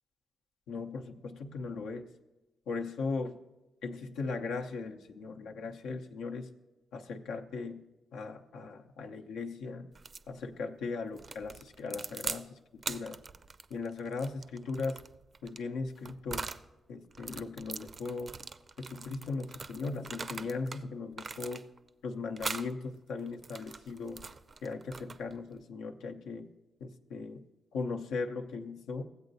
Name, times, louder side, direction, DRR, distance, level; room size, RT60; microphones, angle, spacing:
voice 1, 0.7-2.1 2.7-3.3 3.8-6.5 6.9-7.8 8.1-9.9 10.3-13.2 13.7-15.0 15.4-16.5 16.9-18.4 18.8-21.6 22.0-24.3 24.6-26.5 26.8-27.4 27.7-29.0, left 4 dB, 80° left, 3 dB, 0.7 m, -38 dB
sound 1, 10.0-10.3 11.2-12.5 12.8-16.7 17.1-20.8 21.1-21.9 22.4-22.7 23.3-25.4, right 4 dB, 45° right, 0.4 m, -42 dB
15.5 x 8.0 x 2.7 m, 1.0 s
hypercardioid pair, 40°, 0 cm